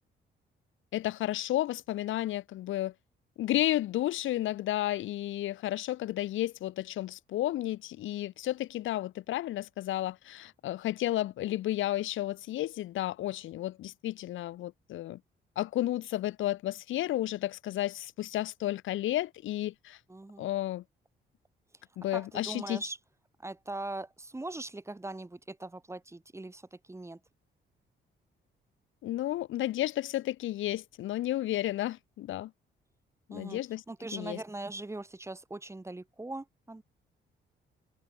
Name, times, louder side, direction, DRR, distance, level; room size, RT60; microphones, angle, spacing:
voice 1, 0.9-2.9 3.4-15.2 15.6-20.0 20.4-20.8 22.0-22.8 29.0-32.5 33.3-33.8 34.1-34.4, left 14 dB, 80° left, 1.1 m, -32 dB
voice 2, 20.1-20.5 22.1-23.0 23.4-27.2 33.3-33.6 33.9-36.8, right 2 dB, 15° right, 3.1 m, -41 dB
cardioid pair, 90°, 20 cm